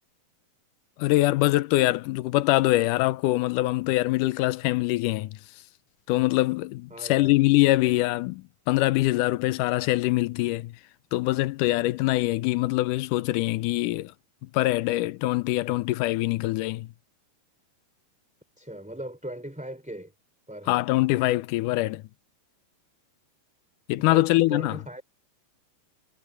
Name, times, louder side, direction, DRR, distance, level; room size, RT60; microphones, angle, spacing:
voice 1, 1.0-5.4 6.1-10.7 11.1-14.1 14.4-16.9 20.7-22.0 23.9-24.8, left 18 dB, 80° left, 2.1 m, -24 dB
voice 2, 6.9-7.3 18.6-20.1 20.5-20.8 24.1-25.0, right 1 dB, ahead, 4.8 m, -38 dB
omnidirectional pair, 4.0 m